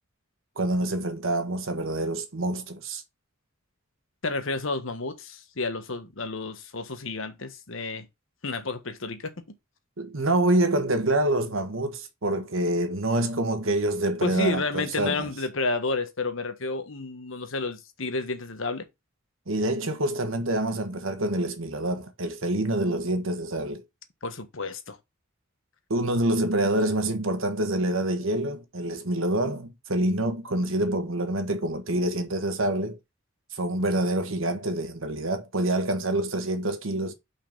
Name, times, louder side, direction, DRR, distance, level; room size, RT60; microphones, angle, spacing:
voice 1, 0.6-3.0 10.0-15.3 19.5-23.8 25.9-33.0 33.5-37.1, right 1 dB, 70° right, 1.5 m, -26 dB
voice 2, 4.2-8.1 8.4-9.3 14.2-18.9 24.2-25.0, left 3 dB, 65° left, 1.3 m, -31 dB
5.6 x 4.5 x 5.4 m
head